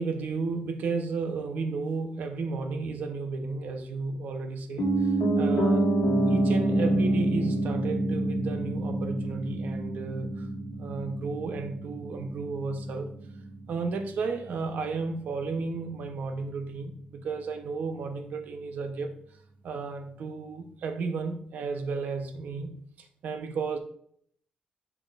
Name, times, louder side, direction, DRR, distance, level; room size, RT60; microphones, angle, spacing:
voice 1, 0.0-5.9 6.3-10.5 10.8-13.1 13.7-19.1 19.6-22.7 23.0-23.8, right 4 dB, 75° right, 6 dB, 0.9 m, -33 dB
Piano, 4.8-14.8 15.1-15.2, right 1 dB, 85° left, 1.5 m, -27 dB
7.0 x 6.5 x 2.6 m, 0.64 s
wide cardioid pair, 150°, 3 cm